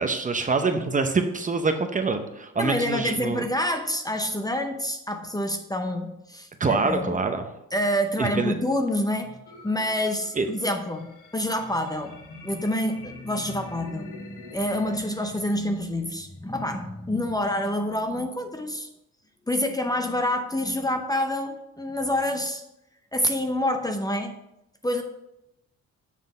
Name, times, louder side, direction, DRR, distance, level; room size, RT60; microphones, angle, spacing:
voice 1, 0.0-3.5 6.6-7.6 8.2-8.5 10.3-10.5, right 4 dB, 25° right, 6 dB, 0.7 m, -25 dB
voice 2, 2.6-7.2 7.7-9.4 9.6-12.2 12.4-18.9 19.5-22.6 23.1-24.4 24.8-25.0, left 1 dB, 10° left, 6 dB, 0.7 m, -27 dB
sound 1, 9.5-16.5, left 3 dB, 85° left, 1.2 m, -47 dB
7.4 x 3.9 x 5.2 m, 0.86 s
cardioid pair, 90°, 30 cm